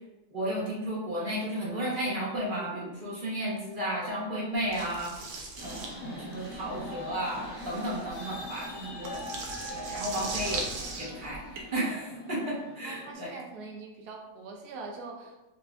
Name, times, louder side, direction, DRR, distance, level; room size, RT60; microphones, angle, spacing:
voice 1, 0.3-5.1 5.6-5.8 6.1-9.3 9.7-10.6 11.0-13.4, right 1 dB, 35° right, -6 dB, 0.9 m, -33 dB
sound 1, 4.7-11.6, right 3 dB, 80° right, 1.5 m, -39 dB
sound 2, 5.6-13.1, equal, 60° left, 1.8 m, -42 dB
voice 2, 12.8-15.5, right 3 dB, 65° right, 1 dB, 1.1 m, -43 dB
6.5 x 2.5 x 2.4 m, 1.0 s
omnidirectional pair, 2.2 m